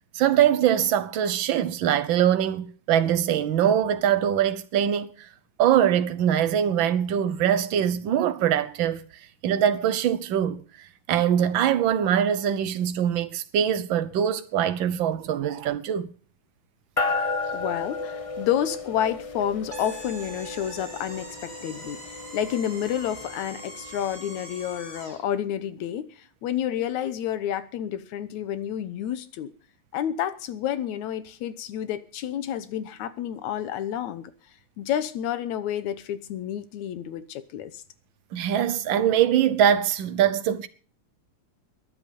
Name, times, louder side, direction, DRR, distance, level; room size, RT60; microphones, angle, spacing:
voice 1, 0.1-5.1 5.6-9.0 9.4-10.6 11.1-16.1 38.3-40.7, right 9 dB, 70° right, 1.1 m, -23 dB
sound 1, 17.0-24.7, left 3 dB, 35° left, 0.5 m, -34 dB
voice 2, 17.5-22.0 22.3-29.5 29.9-34.3 34.8-37.8, left 10 dB, 80° left, 2.3 m, -30 dB
sound 2, 19.7-25.3, right 1 dB, 20° right, 3.4 m, -42 dB
22.0 x 8.2 x 5.3 m
omnidirectional pair, 3.3 m